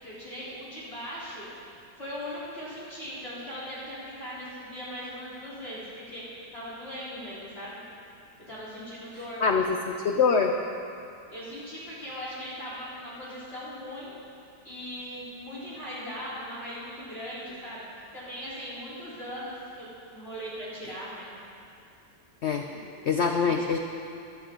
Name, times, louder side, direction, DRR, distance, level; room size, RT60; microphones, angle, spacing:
voice 1, 0.0-1.5 2.0-7.8 8.5-9.4 11.3-14.1 14.6-21.3, equal, 35° left, -10 dB, 4.1 m, -39 dB
voice 2, 9.4-10.5 22.4-22.7 23.1-23.8, left 5 dB, 60° left, 3 dB, 0.7 m, -24 dB
16.5 x 12.0 x 3.8 m, 2.6 s
omnidirectional pair, 1.8 m